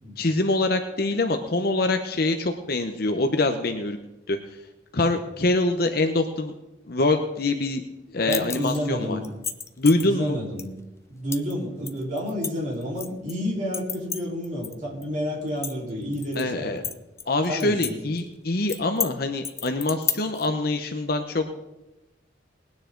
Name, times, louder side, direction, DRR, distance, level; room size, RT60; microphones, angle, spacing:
voice 1, 0.2-4.0 4.3-4.4 4.9-6.5 6.9-7.8 8.1-9.2 9.8-10.4 16.4-16.8 17.3-21.5, left 2 dB, 55° left, 6 dB, 0.9 m, -24 dB
sound 1, 8.3-8.8 9.2-10.1 10.6-10.7 11.3-11.5 11.9-13.3 13.7-14.7 15.0-15.1 15.5-16.4 16.8-17.9 18.2-18.3 18.7-19.1 19.4-20.5, left 6 dB, 15° left, 0.5 m, -31 dB
voice 2, 8.3-9.3 10.0-10.7 11.1-16.8 17.5-18.1, equal, 40° right, -4 dB, 4.1 m, -30 dB
20.0 x 9.6 x 3.9 m, 0.97 s
head